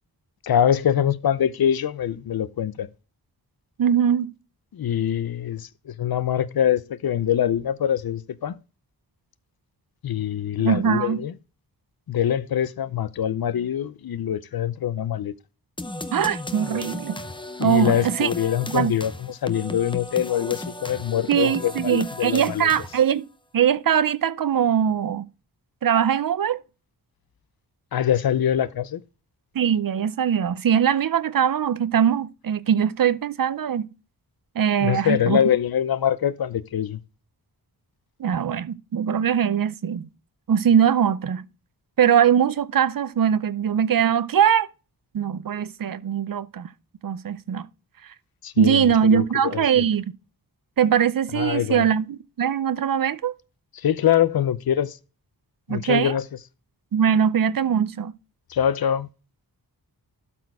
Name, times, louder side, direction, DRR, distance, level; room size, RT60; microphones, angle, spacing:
voice 1, 0.4-2.9 4.7-8.6 10.0-11.3 12.1-15.3 17.6-22.7 27.9-29.0 34.8-37.0 48.4-49.2 49.5-49.8 51.3-51.9 53.7-55.0 55.7-56.2 58.5-59.1, left 9 dB, 65° left, 0.6 m, -24 dB
voice 2, 3.8-4.3 10.6-11.2 16.1-17.2 17.6-18.3 18.7-18.9 21.3-23.2 23.5-25.2 25.8-26.6 29.5-33.9 34.6-35.4 38.2-40.1 40.5-41.4 42.0-44.7 45.1-46.7 47.0-47.7 48.6-50.1 50.8-53.3 55.7-56.2 56.9-58.1, right 8 dB, 55° right, 0.6 m, -21 dB
sound 1, 15.8-23.2, left 1 dB, 10° left, 0.6 m, -35 dB
12.0 x 4.4 x 4.7 m
wide cardioid pair, 150°, 40 cm